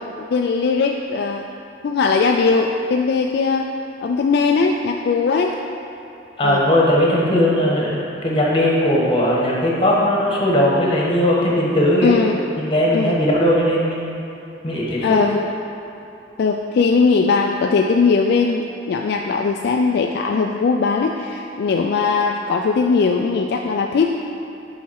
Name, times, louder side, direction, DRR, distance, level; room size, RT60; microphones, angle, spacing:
voice 1, 0.2-1.4 1.8-3.7 4.0-5.6 6.4-6.6 12.0-12.4 12.9-13.2 15.0-15.5 16.4-24.2, left 4 dB, 60° left, 2 dB, 0.3 m, -19 dB
voice 2, 6.4-12.2 12.6-14.2 14.6-15.2, equal, 30° left, -4 dB, 1.3 m, -18 dB
7.1 x 4.8 x 4.6 m, 2.9 s
head